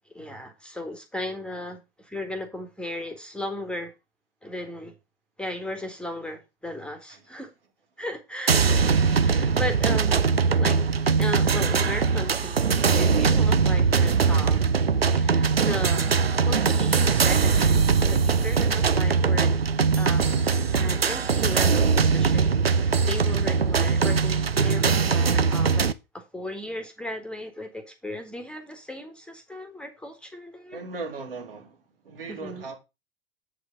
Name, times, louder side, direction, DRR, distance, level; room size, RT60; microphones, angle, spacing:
voice 1, 0.1-3.9 4.4-4.9 5.4-7.5 8.0-8.8 9.2-10.8 11.2-14.6 15.0-16.2 16.4-19.6 20.0-30.8 32.3-32.6, left 1 dB, 5° left, 1.6 m, -36 dB
sound 1, 8.5-25.9, right 5 dB, 85° right, 0.6 m, -21 dB
voice 2, 30.7-31.8 32.0-32.7, right 3 dB, 70° right, 2.5 m, -37 dB
8.0 x 5.1 x 5.2 m
figure-of-eight pair, 85°, 29 cm